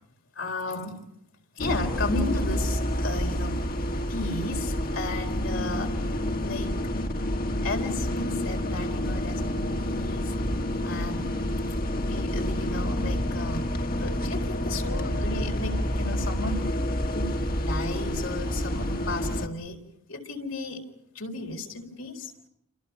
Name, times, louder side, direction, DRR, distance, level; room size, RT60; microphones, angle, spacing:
voice 1, 0.4-1.0 1.6-3.6 4.1-6.0 6.4-6.7 7.6-10.3 10.8-11.3 12.1-13.6 14.0-16.8 17.1-19.8 20.1-20.8 21.1-22.3, left 3 dB, 70° left, 2 dB, 4.1 m, -34 dB
sound 1, 1.6-19.5, equal, 45° left, 2.0 m, -28 dB
29.5 x 27.0 x 5.6 m, 0.75 s
head